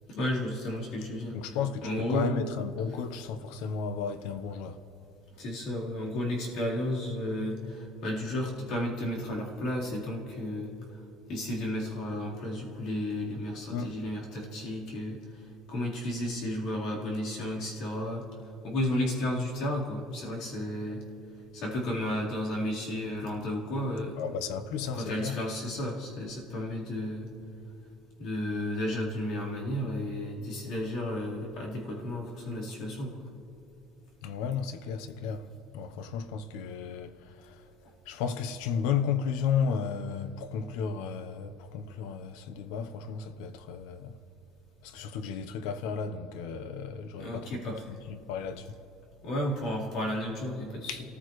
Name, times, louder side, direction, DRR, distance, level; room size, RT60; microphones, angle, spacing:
voice 1, 0.1-2.3 5.4-10.7 11.3-18.3 18.6-21.0 21.5-24.2 24.9-27.3 28.2-33.3 47.2-48.0 49.2-51.0, left 1 dB, 50° left, 4.1 m, -33 dB
voice 2, 1.3-4.8 13.7-13.9 24.2-25.4 34.2-35.5 35.7-37.7 38.0-44.2 44.8-47.8 48.1-48.8 50.9-51.0, left 6 dB, 80° left, 1.0 m, -33 dB
29.5 x 15.0 x 3.2 m
cardioid pair, 180°, 0 cm